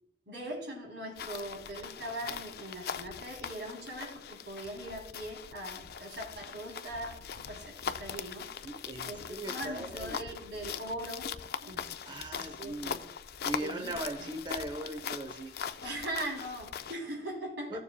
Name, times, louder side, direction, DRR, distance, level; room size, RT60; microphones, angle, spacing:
voice 1, 0.3-8.5 9.0-11.3 11.6-13.0 13.6-14.3 15.8-17.8, right 1 dB, 90° right, 3.3 m, -41 dB
sound 1, 1.2-17.0, left 7 dB, 60° left, 0.4 m, -41 dB
voice 2, 8.6-10.2 12.1-13.0 13.4-15.5 17.7-17.8, right 1 dB, 25° right, 0.7 m, -39 dB
15.5 x 6.9 x 2.2 m
head